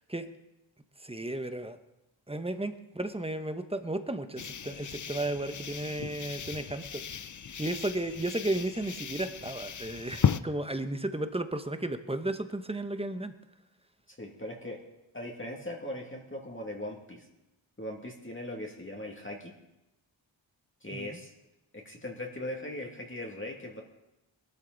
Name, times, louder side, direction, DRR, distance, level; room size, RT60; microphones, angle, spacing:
voice 1, 1.0-1.8 2.3-7.0 7.6-13.3 20.9-21.2, right 1 dB, 10° right, 9 dB, 1.0 m, -34 dB
sound 1, 4.4-10.4, left 7 dB, 40° left, 0.5 m, -35 dB
voice 2, 14.1-14.8 15.1-17.3 17.8-19.5 20.8-21.3 21.7-23.8, left 1 dB, 25° left, -1 dB, 2.3 m, -39 dB
21.0 x 12.5 x 4.0 m, 0.95 s
wide cardioid pair, 80°, 47 cm